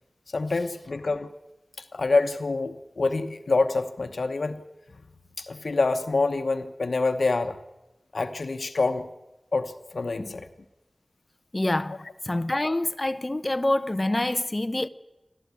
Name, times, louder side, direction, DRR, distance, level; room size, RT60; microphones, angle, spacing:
voice 1, 0.3-1.3 1.9-4.6 5.4-7.6 8.1-9.1 9.5-10.5, left 3 dB, 75° left, 1.0 m, -26 dB
voice 2, 11.5-12.0 12.3-14.9, left 1 dB, 30° left, 0.8 m, -26 dB
23.5 x 14.0 x 9.7 m
wide cardioid pair, 75°, 0 cm